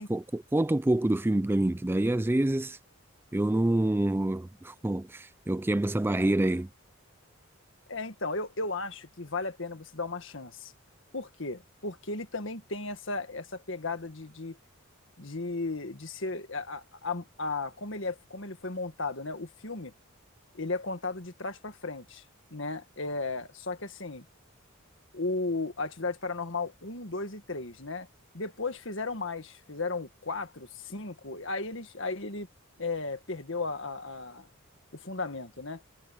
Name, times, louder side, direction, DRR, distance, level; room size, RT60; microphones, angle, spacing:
voice 1, 0.0-2.8 3.3-6.7, right 1 dB, 10° right, 0.3 m, -27 dB
voice 2, 7.9-10.7 11.1-14.6 15.2-19.9 20.5-22.3 22.5-24.3 25.1-28.1 28.3-32.5 32.8-34.5 34.9-35.8, left 3 dB, 60° left, 1.8 m, -35 dB
head